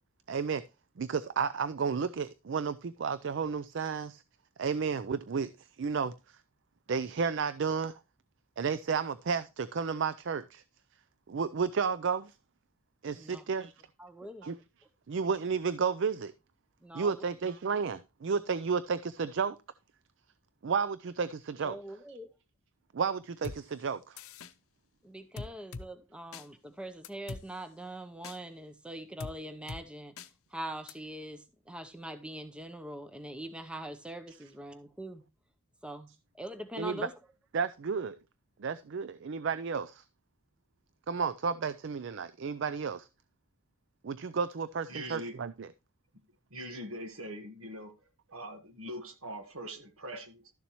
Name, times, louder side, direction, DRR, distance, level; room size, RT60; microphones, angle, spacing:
voice 1, 0.3-0.6 1.0-4.2 4.6-6.4 6.9-7.9 8.6-10.6 11.3-12.3 13.0-13.7 14.4-14.6 15.1-16.3 16.9-19.6 20.6-21.8 22.1-22.2 22.9-24.2 36.8-37.1 37.5-38.2 38.6-40.0 41.1-43.1 44.0-45.7, right 5 dB, 55° right, 0.4 m, -32 dB
voice 2, 13.1-13.4 14.0-14.5 16.8-17.3 21.6-22.3 25.0-30.1 30.5-35.2 35.8-36.1 36.3-37.1, right 1 dB, 5° right, 0.6 m, -43 dB
sound 1, 23.4-23.6 24.2-24.5 25.4-25.9 26.3-26.5 27.0-27.4 28.2-28.4 29.2-29.3 29.7-29.8 30.2-30.3 30.9-31.0, left 3 dB, 75° left, 0.6 m, -41 dB
voice 3, 44.9-45.3 46.5-47.9 48.3-50.5, equal, 70° right, 1.5 m, -42 dB
12.5 x 7.0 x 3.0 m
head